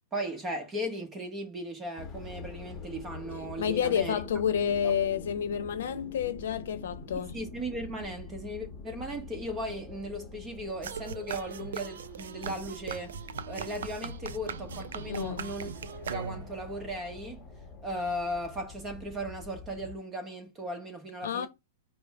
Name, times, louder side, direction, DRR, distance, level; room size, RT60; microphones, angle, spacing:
voice 1, 0.1-4.2 4.8-4.9 7.3-13.1 13.5-15.7 16.1-17.5 17.8-21.5, equal, 15° right, 1.0 m, -37 dB
sound 1, 2.0-20.0, left 4 dB, 15° left, 1.1 m, -45 dB
voice 2, 3.6-7.4 15.1-15.5 21.2-21.5, left 8 dB, 75° left, 0.8 m, -29 dB
sound 2, 10.8-16.6, right 7 dB, 85° right, 0.4 m, -40 dB
5.2 x 2.1 x 4.6 m
hypercardioid pair, 150°, 0 cm